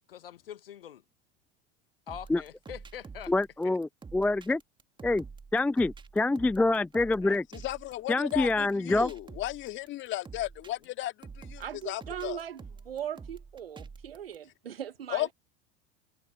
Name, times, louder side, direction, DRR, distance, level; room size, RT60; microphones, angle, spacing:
voice 1, 0.1-1.0 2.1-3.3 3.6-3.8 7.2-7.4 8.9-9.1, left 10 dB, 70° left, 1.4 m, -44 dB
sound 1, 2.1-14.4, right 5 dB, 15° right, 1.9 m, -47 dB
voice 2, 3.3-4.6 5.0-5.2 5.5-7.4 8.1-9.1, left 2 dB, 5° left, 0.4 m, -26 dB
voice 3, 7.5-12.4 15.1-15.3, left 16 dB, 40° left, 2.0 m, -35 dB
voice 4, 11.6-15.3, right 10 dB, 75° right, 1.2 m, -39 dB
figure-of-eight pair, 75°, 29 cm